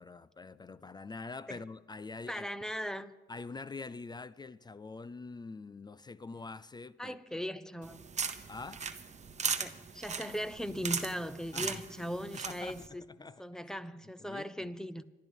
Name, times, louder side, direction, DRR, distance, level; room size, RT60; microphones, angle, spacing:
voice 1, 0.0-2.5 3.3-7.2 8.5-8.9 11.5-11.8 12.3-12.9 13.2-13.4 14.2-14.7, left 3 dB, 20° left, 0.4 m, -45 dB
voice 2, 2.3-3.1 7.0-8.0 9.6-13.0 13.4-15.0, equal, 5° left, 0.8 m, -38 dB
sound 1, 7.8-12.9, right 6 dB, 35° right, 1.0 m, -38 dB
26.5 x 12.0 x 3.7 m
cardioid pair, 90°, 20 cm